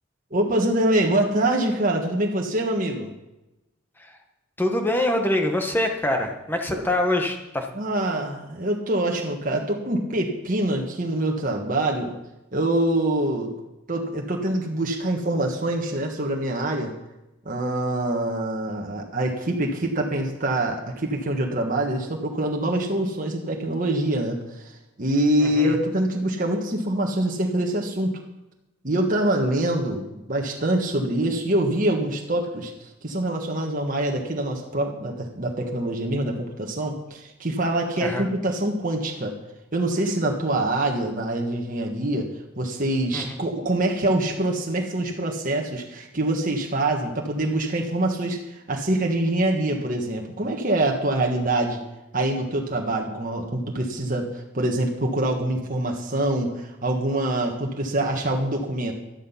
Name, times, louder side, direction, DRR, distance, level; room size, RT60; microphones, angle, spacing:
voice 1, 0.3-3.1 6.7-6.8 7.7-12.1 12.5-13.5 13.9-16.9 17.4-28.2 28.8-39.4 39.7-42.3 42.6-51.8 52.1-58.9, right 1 dB, 40° right, 1 dB, 1.4 m, -25 dB
voice 2, 4.6-7.7 25.4-25.8 38.0-38.2 43.1-43.4, left 1 dB, 10° left, 3 dB, 1.3 m, -24 dB
12.0 x 12.0 x 5.8 m, 0.97 s
head